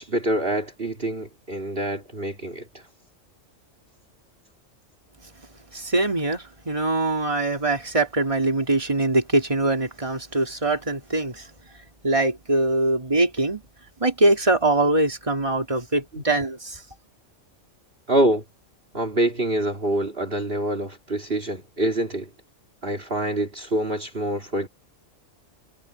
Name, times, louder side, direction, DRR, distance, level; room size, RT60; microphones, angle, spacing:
voice 1, 0.0-2.7 16.1-16.2 18.1-18.4 18.9-22.3 22.8-24.7, right 1 dB, 45° right, 2.9 m, -25 dB
voice 2, 5.7-11.5 12.0-13.6 14.0-16.8, right 2 dB, 25° right, 3.2 m, -23 dB
omnidirectional pair, 1.3 m